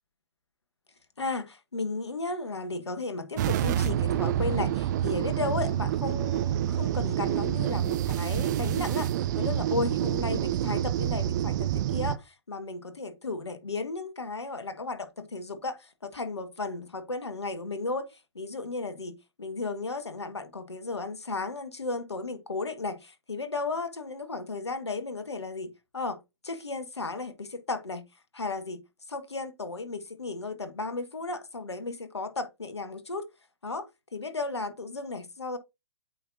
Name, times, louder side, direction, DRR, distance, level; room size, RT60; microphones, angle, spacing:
voice 1, 1.2-28.0 28.3-28.8 29.1-33.2 33.6-33.9 34.1-35.6, left 3 dB, 85° left, 1.4 m, -34 dB
sound 1, 3.4-12.2, right 11 dB, 45° right, 0.5 m, -27 dB
8.6 x 4.9 x 2.6 m
figure-of-eight pair, 115°, 14 cm